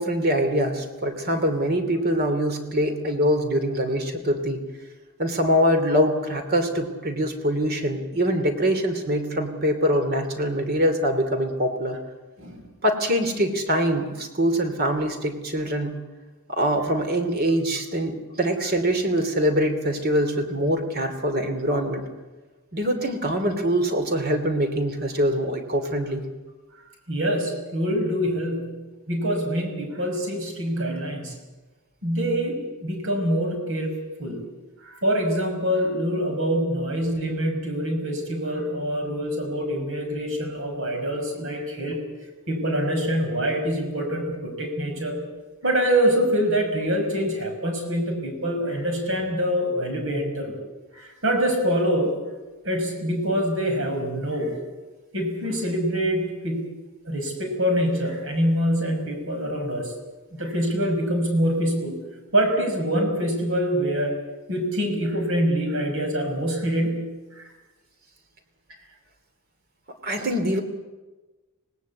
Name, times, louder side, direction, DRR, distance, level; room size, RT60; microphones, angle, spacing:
voice 1, 0.0-4.6 5.2-12.0 12.8-15.9 16.5-22.0 22.7-26.2 70.0-70.6, equal, 45° right, 6 dB, 2.8 m, -24 dB
voice 2, 27.1-31.3 32.0-34.4 34.8-42.0 42.5-45.3 45.6-50.6 50.9-52.1 52.6-54.6 55.1-56.7 57.0-59.9 60.4-62.0 62.3-64.2 64.5-67.1 67.3-67.5, equal, 60° right, 4 dB, 5.9 m, -25 dB
25.5 x 18.5 x 8.4 m, 1.2 s
head